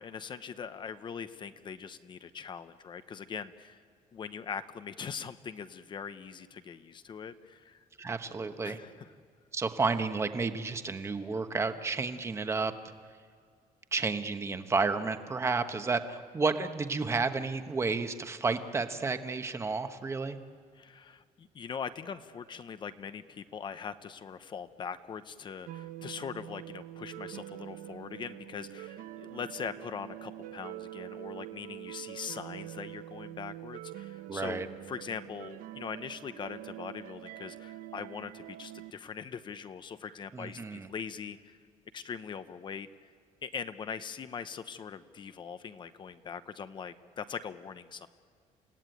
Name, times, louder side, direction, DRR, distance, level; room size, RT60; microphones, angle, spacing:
voice 1, 0.0-3.8 4.1-7.8 8.6-9.1 20.7-41.6 41.9-42.9 43.4-48.1, left 6 dB, 35° left, 11 dB, 0.8 m, -41 dB
voice 2, 8.0-8.8 9.5-12.7 13.9-20.4 34.3-34.7 40.3-40.9, right 4 dB, 20° right, 8 dB, 1.1 m, -31 dB
sound 1, 25.7-38.9, right 14 dB, 90° right, 0.8 m, -45 dB
29.0 x 17.0 x 9.2 m, 2.2 s
cardioid pair, 165°, 14 cm